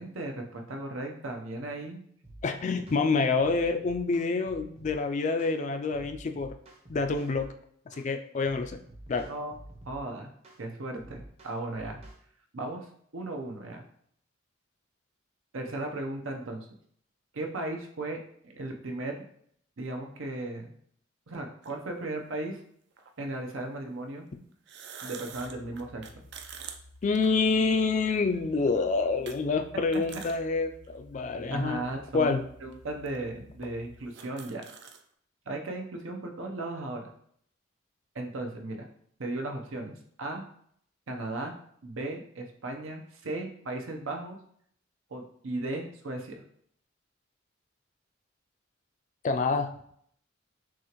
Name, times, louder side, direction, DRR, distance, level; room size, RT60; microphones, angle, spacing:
voice 1, 0.0-2.0 9.3-9.6 9.8-10.3 10.6-12.0 12.5-13.8 15.5-16.7 17.3-19.2 19.8-20.7 21.3-22.6 23.2-24.3 25.0-26.2 31.5-34.6 35.5-37.1 38.1-38.9 39.2-40.4 41.1-41.6 41.8-44.4 45.1-46.3, right 2 dB, 85° right, 3 dB, 0.8 m, -36 dB
sound 1, 2.2-2.5 2.9-3.0 3.4-5.0 5.4-5.6 5.9-7.5 7.9-8.1 8.4-10.0 10.4-10.6 11.0-12.2, right 1 dB, 30° right, 0.7 m, -49 dB
voice 2, 2.4-6.5 6.9-7.5 8.0-8.8 9.1-9.3 27.0-31.8 32.1-32.5 49.2-49.7, left 4 dB, 35° left, 6 dB, 0.3 m, -27 dB
sound 2, 21.6-21.7 23.0-23.1 24.5-27.9 28.3-28.4 29.3-29.4 29.8-30.4 30.8-30.9 31.8-31.9 32.7-32.8 33.1-33.2 33.6-33.7 33.9-35.0, right 7 dB, 55° right, 0.4 m, -45 dB
sound 3, 25.3-34.0, left 1 dB, 85° left, 1.0 m, -54 dB
6.1 x 2.5 x 3.0 m, 0.65 s
head